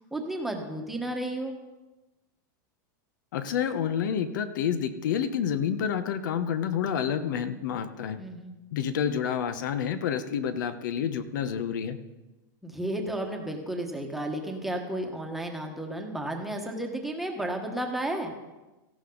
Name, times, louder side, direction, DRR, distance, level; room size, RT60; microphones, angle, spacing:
voice 1, 0.1-1.5 8.2-8.5 12.6-18.3, right 1 dB, ahead, 1 dB, 1.3 m, -33 dB
voice 2, 3.3-8.2 8.7-12.0, left 8 dB, 65° left, 11 dB, 1.0 m, -29 dB
17.5 x 15.0 x 3.9 m, 1.1 s
supercardioid pair, 175°, 11 cm